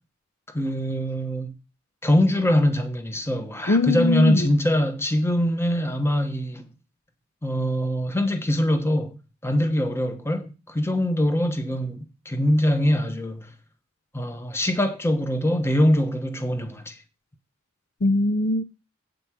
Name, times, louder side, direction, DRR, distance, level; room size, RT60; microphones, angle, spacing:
voice 1, 0.5-1.5 2.0-6.6 7.4-9.2 9.4-13.5 14.1-16.9, equal, 10° left, 1.0 m, -23 dB
voice 2, 3.7-4.5 18.0-18.6, left 2 dB, 45° left, 0.5 m, -21 dB
8.4 x 5.2 x 7.5 m
head